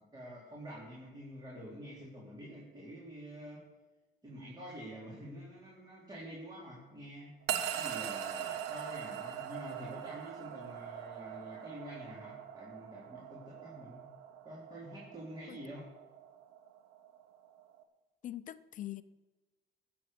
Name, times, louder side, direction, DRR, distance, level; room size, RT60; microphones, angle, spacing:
voice 1, 0.1-3.6 4.2-7.3 7.7-14.1 14.4-15.9, equal, 25° right, -5 dB, 3.7 m, -47 dB
sound 1, 7.5-17.8, right 10 dB, 85° right, 1.1 m, -42 dB
voice 2, 18.2-19.0, left 13 dB, 50° left, 14 dB, 0.6 m, -42 dB
15.5 x 7.8 x 6.8 m, 1.2 s
cardioid pair, 110°, 17 cm